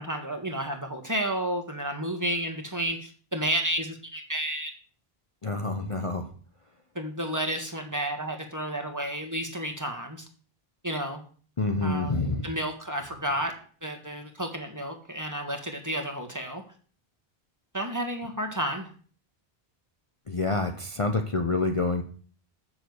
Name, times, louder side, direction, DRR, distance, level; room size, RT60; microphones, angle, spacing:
voice 1, 0.0-4.7 6.9-10.2 10.8-11.2 11.8-13.5 13.8-16.6 17.7-18.9, right 1 dB, 20° right, 3 dB, 1.7 m, -31 dB
voice 2, 5.4-6.3 11.6-12.5 20.3-22.0, left 3 dB, 35° left, 5 dB, 0.8 m, -27 dB
7.2 x 6.8 x 8.0 m, 0.43 s
omnidirectional pair, 1.0 m